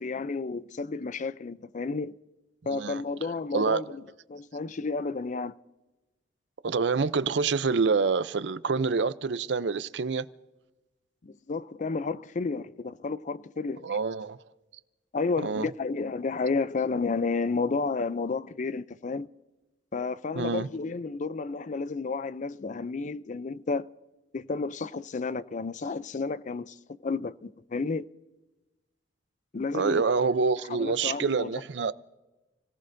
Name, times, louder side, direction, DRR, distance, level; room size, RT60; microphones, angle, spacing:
voice 1, 0.0-2.1 2.7-4.0 4.3-5.5 11.2-13.9 15.1-19.3 19.9-23.9 24.3-26.8 27.0-28.1 29.5-30.0 30.8-31.5, left 4 dB, 45° left, 0.5 m, -31 dB
voice 2, 2.7-3.0 3.5-3.8 6.6-10.3 13.8-14.4 15.4-15.7 20.3-20.7 29.7-31.9, right 4 dB, 70° right, 0.6 m, -26 dB
30.0 x 18.0 x 2.7 m
head